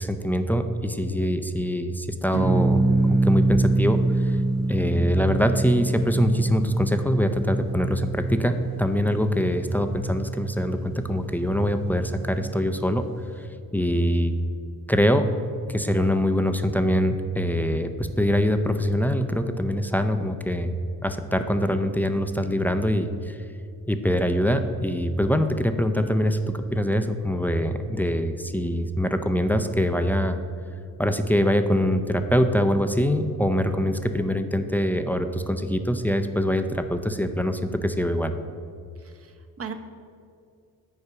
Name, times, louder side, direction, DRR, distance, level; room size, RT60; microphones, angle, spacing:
voice 1, 0.0-2.8 3.1-4.4 4.7-13.1 13.4-13.5 13.7-14.3 14.9-15.2 15.7-20.7 21.0-23.4 23.9-30.4 31.0-38.3, equal, 5° left, 8 dB, 0.4 m, -24 dB
sound 1, 2.3-12.9, right 2 dB, 60° right, 1.1 m, -26 dB
voice 2, 39.0-39.7, right 6 dB, 35° right, 6 dB, 0.8 m, -38 dB
6.6 x 4.5 x 6.0 m, 2.4 s
supercardioid pair, 50°, 41 cm